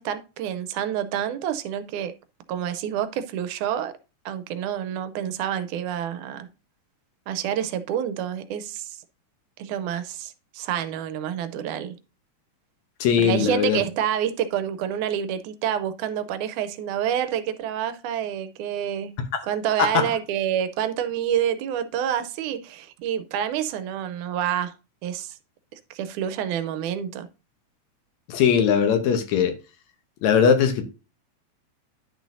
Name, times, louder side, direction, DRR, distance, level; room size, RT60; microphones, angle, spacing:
voice 1, 0.0-2.1 2.5-3.9 4.3-6.5 7.3-9.0 9.6-12.0 13.2-19.1 19.4-24.7 25.0-25.4 25.9-27.3, right 9 dB, 90° right, 2.1 m, -28 dB
voice 2, 13.0-13.8 19.8-20.0 28.3-29.6 30.2-30.8, left 7 dB, 70° left, 2.1 m, -20 dB
10.5 x 6.3 x 2.6 m
omnidirectional pair, 3.5 m